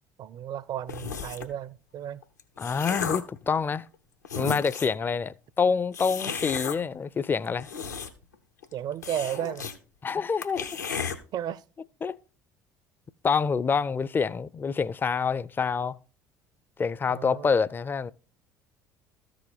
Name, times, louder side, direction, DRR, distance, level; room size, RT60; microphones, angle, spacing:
voice 1, 0.2-2.2 8.7-9.7 10.9-11.0 11.3-11.6 17.1-17.6, right 10 dB, 50° right, 0.5 m, -34 dB
sound 1, 0.9-1.6 2.2-3.4 3.9-4.0 4.2-5.0 5.9-6.8 7.4-8.3 8.6-8.7 9.0-9.8 10.1-10.2 10.4-11.2, left 6 dB, 85° left, 0.8 m, -34 dB
voice 2, 2.6-3.9 4.4-7.7 10.0-10.8 12.0-12.2 13.2-16.0 16.8-18.1, left 5 dB, 20° left, 0.4 m, -27 dB
13.5 x 5.0 x 3.9 m
figure-of-eight pair, 60°, 9 cm